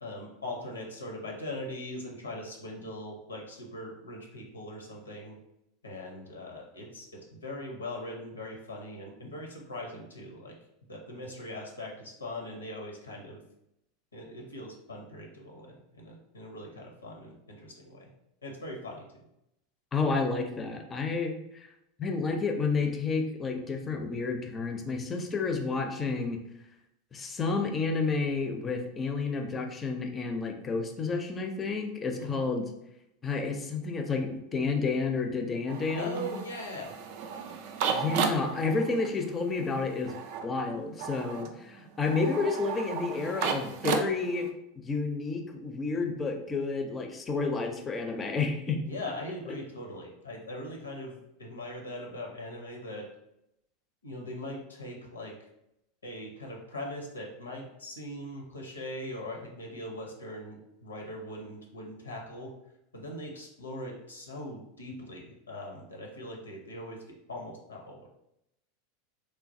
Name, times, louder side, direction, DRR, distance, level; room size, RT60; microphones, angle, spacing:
voice 1, 0.0-5.4 5.8-10.6 10.9-13.4 14.1-18.1 18.4-19.1 32.2-32.4 36.0-37.0 48.9-53.1 54.0-55.4 56.0-62.5 62.9-67.0 67.3-68.1, left 1 dB, 85° left, 0 dB, 0.6 m, -41 dB
voice 2, 19.9-21.7 22.0-26.4 27.1-32.7 33.2-36.3 37.9-40.1 40.4-44.5 44.8-48.8, left 4 dB, 25° left, 4 dB, 0.4 m, -30 dB
sound 1, 35.7-44.5, right 6 dB, 60° right, 0.3 m, -34 dB
3.1 x 2.2 x 2.6 m, 0.83 s
figure-of-eight pair, 85°, 0 cm